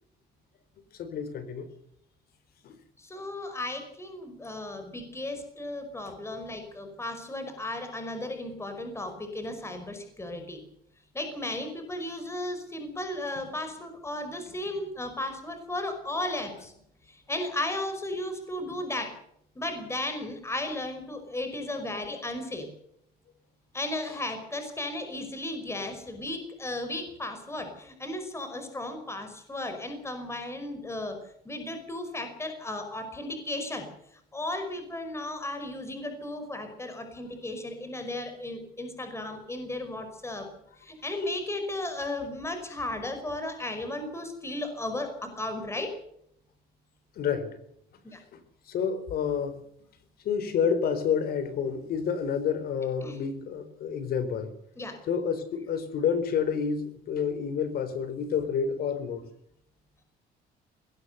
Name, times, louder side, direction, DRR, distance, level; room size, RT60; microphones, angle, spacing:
voice 1, 0.9-1.7 2.6-2.8 47.2-47.5 48.7-49.6 50.2-54.5 55.1-59.2, left 7 dB, 65° left, 13 dB, 4.2 m, -29 dB
voice 2, 3.0-10.6 11.1-16.7 17.1-19.2 19.6-22.7 23.7-33.9 34.1-40.5 40.8-45.9 48.0-48.2 53.0-53.2 54.8-55.0, left 1 dB, 15° left, 6 dB, 5.3 m, -35 dB
21.0 x 18.0 x 6.9 m, 0.72 s
cardioid pair, 110°, 17 cm